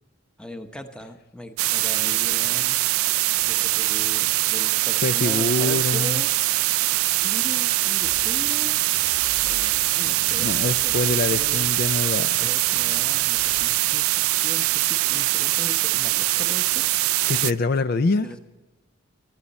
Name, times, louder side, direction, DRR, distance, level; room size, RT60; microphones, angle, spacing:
voice 1, 0.4-2.8 3.4-6.3 7.2-8.8 9.4-11.7 12.4-14.1 14.4-16.8 18.2-18.4, left 1 dB, 5° left, 7 dB, 0.9 m, -39 dB
sound 1, 1.6-17.5, right 18 dB, 80° right, 0.3 m, -22 dB
voice 2, 5.0-6.2 10.4-12.5 17.3-18.3, left 3 dB, 45° left, 12 dB, 0.4 m, -25 dB
sound 2, 8.0-13.8, equal, 20° left, 1.3 m, -46 dB
17.5 x 12.5 x 4.2 m, 1.1 s
head